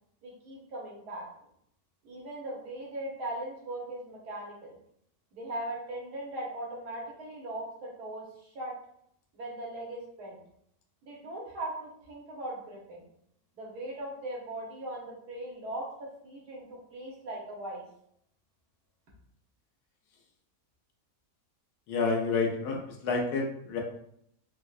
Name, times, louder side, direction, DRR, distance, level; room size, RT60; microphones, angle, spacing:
voice 1, 0.2-1.2 2.0-4.8 5.3-8.7 9.3-10.4 11.0-13.0 13.5-17.8, right 1 dB, 85° right, -3 dB, 1.5 m, -39 dB
voice 2, 21.9-23.8, left 4 dB, 90° left, 1 dB, 1.2 m, -29 dB
4.4 x 2.1 x 2.4 m, 0.70 s
omnidirectional pair, 1.7 m